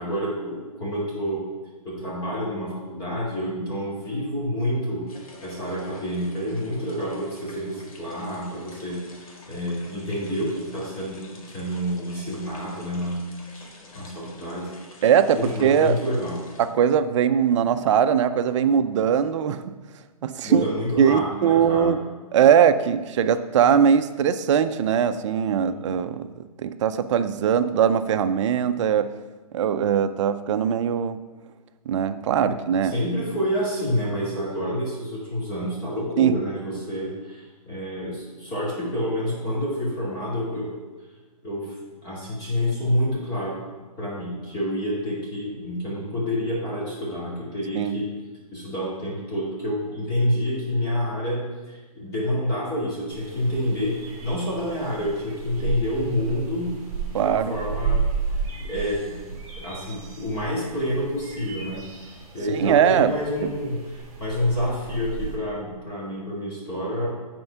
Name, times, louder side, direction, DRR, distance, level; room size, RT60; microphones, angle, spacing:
voice 1, 0.0-1.4 1.8-5.1 5.4-13.2 13.5-13.7 13.9-14.7 15.4-16.4 20.4-21.9 25.6-25.8 32.4-32.5 32.9-40.7 41.4-41.8 42.0-43.5 44.0-48.0 48.5-56.8 57.1-58.0 58.5-61.8 62.3-67.1, equal, 20° left, -6 dB, 2.5 m, -28 dB
sound 1, 5.1-16.7, left 2 dB, 65° left, 1.7 m, -48 dB
voice 2, 15.0-16.0 16.6-19.7 20.2-20.6 21.0-22.0 22.3-29.1 29.5-31.2 31.9-33.0 36.2-36.3 47.8-48.0 57.1-57.5 62.5-63.1, right 8 dB, 50° right, 11 dB, 0.5 m, -21 dB
sound 2, 53.1-65.3, right 6 dB, 20° right, 2.0 m, -33 dB
7.8 x 4.4 x 5.8 m, 1.3 s
hypercardioid pair, 150°, 19 cm